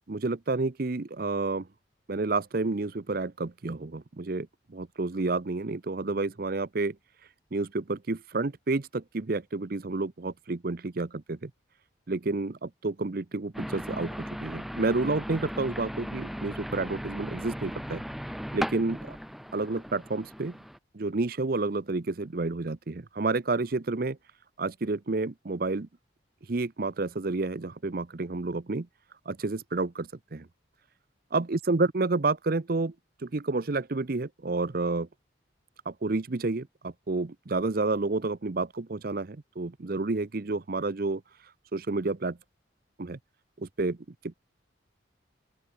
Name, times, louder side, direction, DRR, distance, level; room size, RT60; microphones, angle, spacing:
voice 1, 0.1-1.7 2.1-7.0 7.5-11.5 12.1-18.0 18.5-19.2 19.5-20.6 20.9-24.2 24.6-25.9 26.5-28.9 29.3-30.5 31.3-32.9 33.2-35.1 35.9-41.2 41.7-42.4 43.0-43.2 43.6-44.0 44.2-44.3, right 3 dB, 50° right, 0.7 m, -30 dB
sound 1, 13.5-20.8, equal, ahead, 3.8 m, -37 dB
open air
head